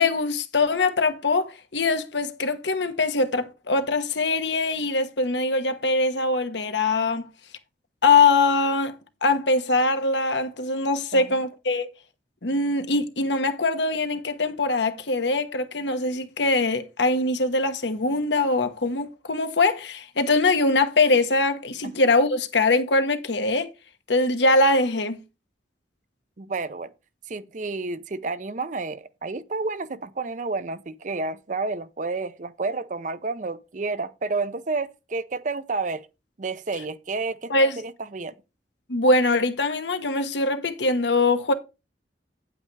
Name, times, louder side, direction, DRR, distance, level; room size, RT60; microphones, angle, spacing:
voice 1, 0.0-7.3 8.0-11.9 12.4-23.7 24.1-25.2 37.5-37.8 38.9-41.5, left 3 dB, 75° left, 1.2 m, -22 dB
voice 2, 26.4-26.9 27.3-36.1 36.4-38.3, right 3 dB, 45° right, 0.6 m, -30 dB
9.4 x 8.6 x 3.3 m
head